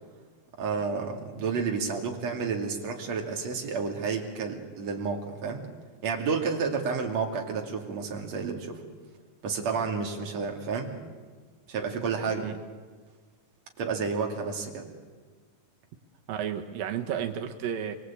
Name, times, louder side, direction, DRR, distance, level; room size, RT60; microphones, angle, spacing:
voice 1, 0.6-5.6 6.0-8.8 9.4-10.9 11.7-12.5 13.8-14.8, right 5 dB, 50° right, 2 dB, 3.7 m, -30 dB
voice 2, 16.3-18.0, right 9 dB, 90° right, 4 dB, 3.1 m, -32 dB
26.5 x 22.5 x 8.6 m, 1.5 s
omnidirectional pair, 3.9 m